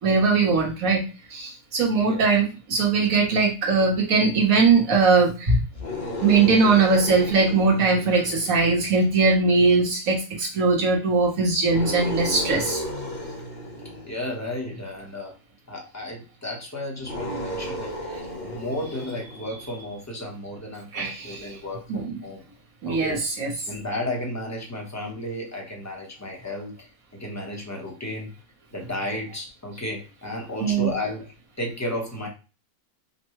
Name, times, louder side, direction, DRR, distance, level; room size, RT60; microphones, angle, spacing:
voice 1, 0.0-1.0 1.3-5.6 6.2-12.8 20.9-21.5 21.9-22.2 22.8-23.6 30.6-31.0, right 4 dB, 65° right, -1 dB, 1.6 m, -20 dB
voice 2, 1.9-2.3 14.0-15.3 15.7-22.4 22.9-23.2 23.7-28.4 28.7-32.3, left 1 dB, 15° left, 0 dB, 0.8 m, -33 dB
sound 1, 5.7-9.3 11.6-14.8 17.0-19.7, left 1 dB, 35° left, 1.0 m, -34 dB
5.1 x 2.2 x 3.1 m, 0.32 s
omnidirectional pair, 1.5 m